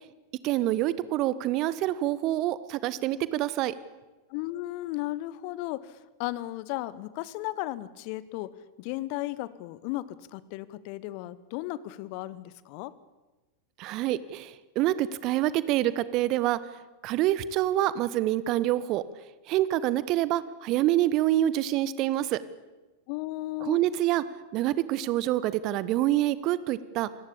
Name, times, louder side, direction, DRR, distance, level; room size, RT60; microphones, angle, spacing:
voice 1, 0.4-3.7 13.8-16.6 17.0-19.0 19.5-22.4 23.6-24.2 24.5-27.1, right 14 dB, 40° right, 17 dB, 1.1 m, -26 dB
voice 2, 4.3-8.5 8.8-12.9 23.1-23.8, left 17 dB, 45° left, 18 dB, 1.1 m, -35 dB
27.0 x 17.5 x 8.5 m, 1.2 s
figure-of-eight pair, 90°, 0 cm